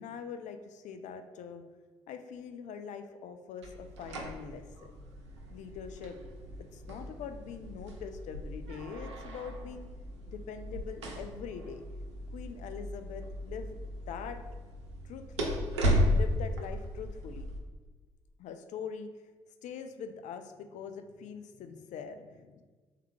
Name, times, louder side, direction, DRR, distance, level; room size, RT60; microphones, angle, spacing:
voice 1, 0.0-1.6 2.1-4.7 5.5-6.2 6.6-9.9 10.3-11.8 12.3-14.4 15.0-15.5 15.8-17.5 18.4-19.1 19.6-22.6, left 6 dB, 60° left, 8 dB, 0.4 m, -43 dB
sound 1, 3.6-17.6, equal, 90° right, 0.4 m, -35 dB
3.5 x 3.3 x 3.2 m, 1.3 s
hypercardioid pair, 45°, 14 cm